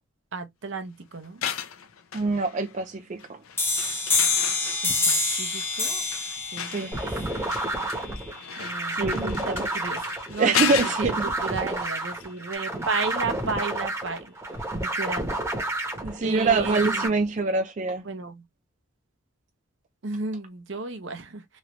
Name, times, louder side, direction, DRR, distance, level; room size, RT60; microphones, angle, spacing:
voice 1, 0.3-1.4 4.8-6.9 7.5-7.6 8.6-10.5 10.8-14.6 14.8-15.2 16.2-17.1 18.0-18.4 20.0-21.6, right 4 dB, 60° right, 0.7 m, -34 dB
sound 1, 1.2-2.9 3.2-12.3 12.5-12.6, left 8 dB, 85° left, 0.6 m, -34 dB
voice 2, 2.1-3.4 6.7-6.9 8.9-9.7 10.4-11.3 16.0-18.0, right 3 dB, 35° right, 0.3 m, -25 dB
sound 2, 3.6-9.0, left 3 dB, 10° left, 0.6 m, -27 dB
sound 3, 6.9-17.1, right 2 dB, 15° right, 0.9 m, -30 dB
3.1 x 2.5 x 3.0 m
head